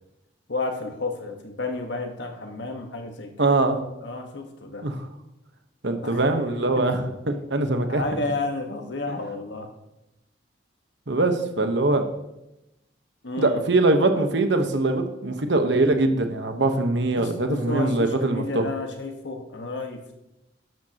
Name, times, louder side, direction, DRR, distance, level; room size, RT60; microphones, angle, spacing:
voice 1, 0.5-3.6 4.0-4.9 6.0-6.2 6.7-7.0 7.9-9.7 13.2-13.6 17.2-20.1, left 2 dB, 75° left, 4 dB, 1.4 m, -31 dB
voice 2, 3.4-3.8 4.8-5.0 5.8-8.0 9.1-9.2 11.1-12.1 13.4-18.7, right 2 dB, 70° right, 6 dB, 1.2 m, -22 dB
13.0 x 11.0 x 3.0 m, 0.93 s
head